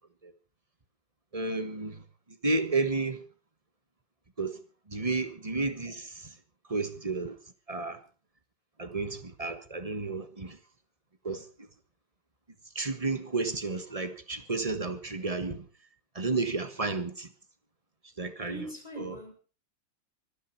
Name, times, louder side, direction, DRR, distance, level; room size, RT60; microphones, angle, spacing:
voice 1, 1.3-2.0 2.4-3.2 4.4-4.6 4.9-6.3 6.7-7.4 7.7-8.0 8.8-10.6 11.2-11.4 12.7-15.7 16.1-17.3 18.2-18.6 19.0-19.1, right 3 dB, 20° right, 1.3 m, -32 dB
voice 2, 18.5-19.3, equal, 20° left, 5.2 m, -41 dB
24.5 x 11.0 x 4.6 m
omnidirectional pair, 2.0 m